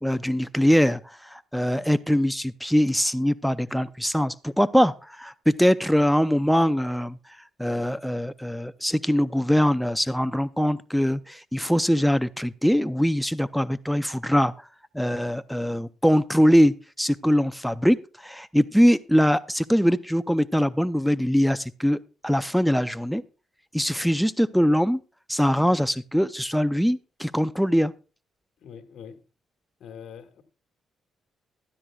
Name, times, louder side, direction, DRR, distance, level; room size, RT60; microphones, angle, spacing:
voice 1, 0.0-14.7 14.9-23.2 23.7-25.0 25.3-27.9, equal, ahead, 0.5 m, -22 dB
voice 2, 28.6-29.2 29.8-30.4, left 7 dB, 70° left, 1.6 m, -43 dB
15.5 x 12.5 x 2.3 m
cardioid pair, 90°, 0 cm